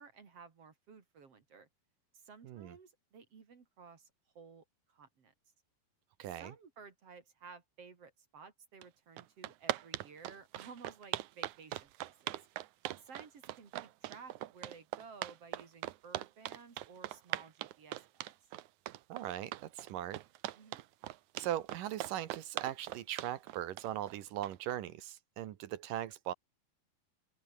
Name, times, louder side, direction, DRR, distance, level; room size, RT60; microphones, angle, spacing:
voice 1, 0.0-1.7 2.1-5.3 6.3-12.5 13.0-18.3 20.5-20.8, right 5 dB, 40° right, 3.1 m, -55 dB
voice 2, 2.4-2.8 6.2-6.5 19.1-20.2 21.4-26.3, right 12 dB, 65° right, 2.5 m, -39 dB
sound 1, 8.8-8.9 9.2-24.7, right 15 dB, 90° right, 1.7 m, -40 dB
open air
omnidirectional pair, 4.7 m